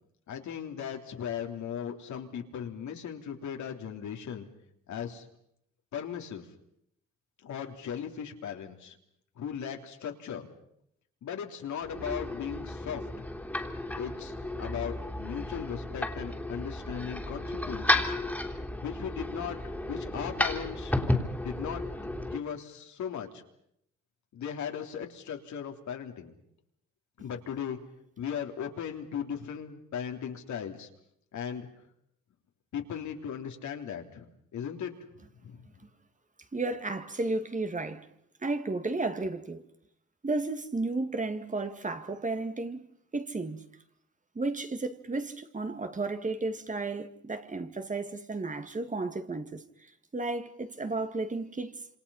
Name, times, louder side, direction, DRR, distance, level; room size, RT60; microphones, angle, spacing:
voice 1, 0.3-4.5 4.9-5.3 5.9-6.5 7.4-9.0 9.3-10.5 11.2-13.3 14.0-18.1 18.8-19.6 19.9-21.2 21.4-21.8 22.2-23.4 24.3-26.3 27.2-27.8 28.2-30.9 31.3-31.7 32.7-34.3 34.5-34.9 35.3-35.7, left 8 dB, 70° left, 3.4 m, -37 dB
sound 1, 11.8-22.4, left 1 dB, 5° left, 3.3 m, -33 dB
voice 2, 36.5-38.1 38.4-39.6 40.2-42.8 43.1-43.6 44.4-51.8, right 3 dB, 25° right, 2.1 m, -33 dB
27.5 x 27.0 x 5.7 m
cardioid pair, 90°, 30 cm